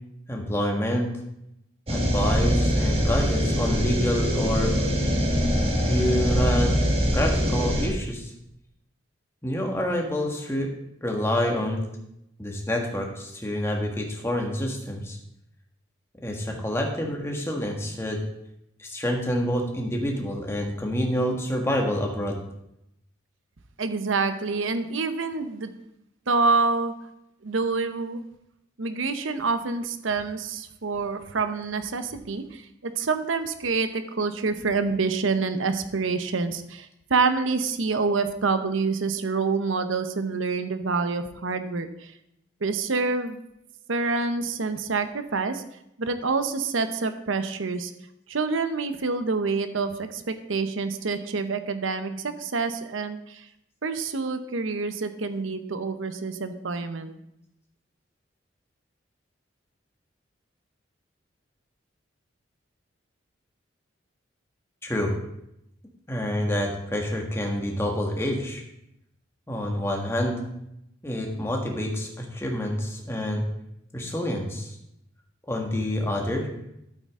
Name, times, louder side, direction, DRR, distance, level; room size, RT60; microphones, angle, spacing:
voice 1, 0.3-1.1 1.9-4.7 5.8-6.7 7.1-8.3 9.4-10.7 11.0-11.8 12.4-15.2 16.2-18.2 18.8-22.4 64.8-65.1 66.1-68.6 69.5-70.4 71.0-73.4 73.9-74.8 75.5-76.5, left 1 dB, 15° left, 1 dB, 1.6 m, -27 dB
sound 1, 1.9-7.9, equal, 30° right, 1.6 m, -23 dB
voice 2, 23.8-25.7 26.3-26.9 27.4-28.2 28.8-42.1 42.6-43.4 43.9-45.6 46.0-47.9 48.3-53.5 53.8-57.1, right 4 dB, 85° right, 9 dB, 0.8 m, -27 dB
11.5 x 8.4 x 3.7 m, 0.80 s
head